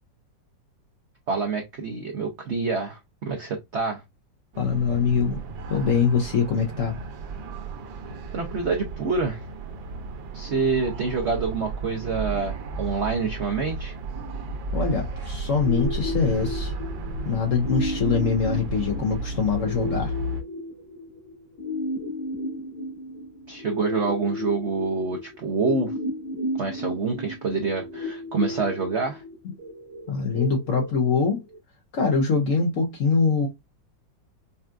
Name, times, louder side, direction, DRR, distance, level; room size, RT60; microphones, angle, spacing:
voice 1, 1.3-4.0 8.3-9.4 10.3-13.9 23.5-25.9 26.6-29.2, right 4 dB, 65° right, 0.6 m, -27 dB
sound 1, 4.5-20.4, right 2 dB, 90° right, 1.5 m, -33 dB
voice 2, 4.6-5.4 5.7-7.0 14.7-16.7 17.3-20.1 30.1-31.4 31.9-33.5, left 5 dB, 60° left, 0.8 m, -23 dB
sound 2, 15.6-31.6, left 1 dB, 85° left, 2.7 m, -34 dB
5.4 x 2.3 x 2.4 m
omnidirectional pair, 2.0 m